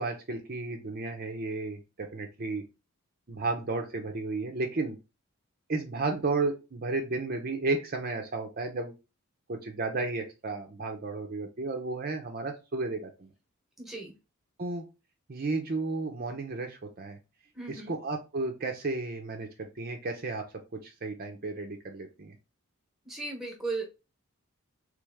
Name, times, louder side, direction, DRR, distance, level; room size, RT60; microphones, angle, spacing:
voice 1, 0.0-2.6 3.3-5.0 5.7-8.9 9.5-13.3 14.6-14.8 15.3-17.2 17.7-20.4 20.8-22.4, right 3 dB, 45° right, 4 dB, 0.6 m, -33 dB
voice 2, 13.8-14.1 17.5-17.9 23.0-23.9, right 3 dB, ahead, 1 dB, 1.1 m, -36 dB
3.4 x 3.2 x 3.5 m, 0.28 s
head